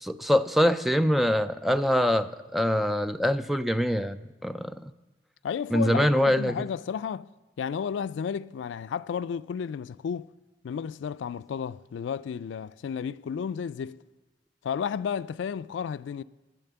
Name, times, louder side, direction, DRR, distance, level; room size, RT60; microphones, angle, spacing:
voice 1, 0.0-4.9 5.7-6.6, equal, ahead, 0.3 m, -24 dB
voice 2, 5.4-7.3 7.6-10.3 10.6-14.0 14.6-16.2, left 7 dB, 80° left, 0.3 m, -32 dB
10.5 x 10.5 x 6.8 m
head